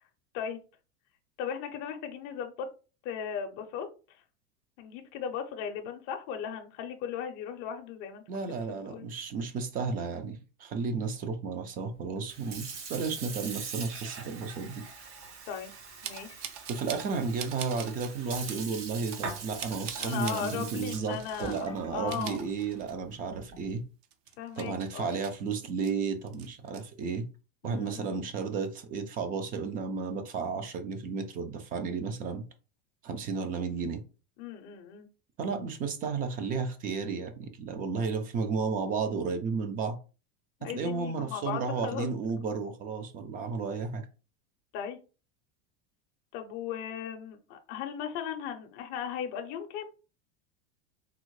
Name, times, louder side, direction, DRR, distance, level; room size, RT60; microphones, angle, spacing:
voice 1, 1.4-2.7 3.0-4.2 4.8-8.2 8.7-9.1 15.5-15.7 16.0-16.4 19.9-22.4 24.4-25.1 27.6-28.1 34.4-35.1 40.6-42.1 44.7-45.0 46.3-49.9, left 8 dB, 45° left, 0.5 m, -37 dB
voice 2, 8.3-14.8 16.7-23.8 24.6-27.3 27.6-32.4 33.0-34.0 35.4-40.0 40.6-44.0, right 5 dB, 25° right, 0.3 m, -33 dB
Sink (filling or washing) / Fill (with liquid), 12.2-23.7, right 4 dB, 85° right, 1.4 m, -43 dB
sound 1, 16.0-17.1 17.4-18.1 18.5-18.6 19.1-20.4 21.1-21.7 22.0-23.2 23.5-23.6 24.0-25.9 26.3-26.8, right 9 dB, 65° right, 0.6 m, -42 dB
3.6 x 2.1 x 3.0 m
supercardioid pair, 140°, 35 cm